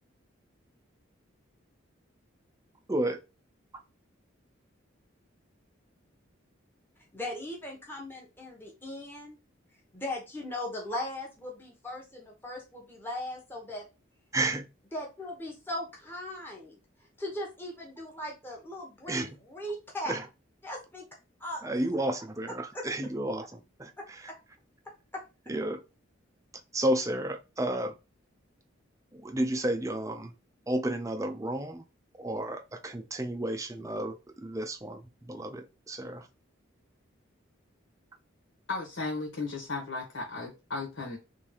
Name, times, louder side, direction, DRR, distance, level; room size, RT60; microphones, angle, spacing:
voice 1, 2.9-3.2 14.3-14.7 19.1-19.3 20.1-20.3 21.6-24.3 25.5-25.8 26.7-27.9 29.1-30.3 30.7-31.8 32.2-36.3, right 1 dB, 15° right, 0.5 m, -32 dB
voice 2, 7.1-9.4 9.9-13.8 14.9-16.8 17.2-20.1 20.6-21.0 21.4-21.7 22.7-22.8 24.3-24.4 25.1-25.2, left 1 dB, 10° left, 1.1 m, -38 dB
voice 3, 38.7-41.2, left 3 dB, 75° left, 1.7 m, -35 dB
3.5 x 3.3 x 4.6 m
head